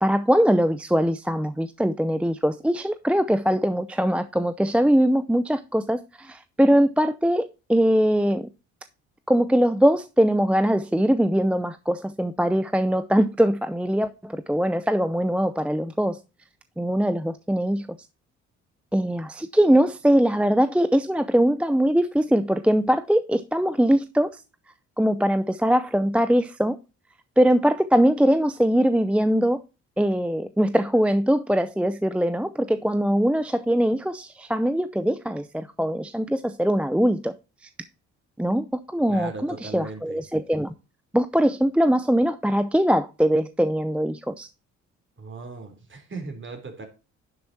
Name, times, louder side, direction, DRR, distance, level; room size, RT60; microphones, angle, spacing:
voice 1, 0.0-8.5 9.3-16.2 16.8-17.9 18.9-24.4 25.0-26.8 27.4-29.6 30.0-37.3 38.4-40.7 41.1-44.5, equal, 5° right, 0.6 m, -22 dB
voice 2, 39.1-40.2 45.2-46.9, right 4 dB, 40° right, 3.5 m, -37 dB
11.0 x 7.2 x 2.8 m
supercardioid pair, 70°, 31 cm